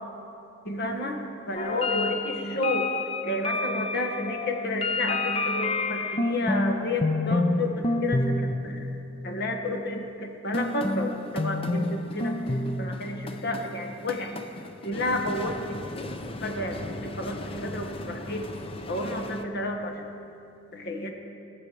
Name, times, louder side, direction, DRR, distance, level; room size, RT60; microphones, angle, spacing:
voice 1, 0.6-2.9 3.2-8.9 9.2-14.4 14.8-15.8 16.4-18.5 18.9-20.1 20.7-21.1, left 1 dB, 55° left, 3 dB, 1.4 m, -31 dB
sound 1, 1.6-6.7 7.0-7.6 7.8-8.5 10.5-19.4, left 2 dB, 30° left, 0.6 m, -30 dB
20.0 x 6.9 x 6.8 m, 2.7 s
head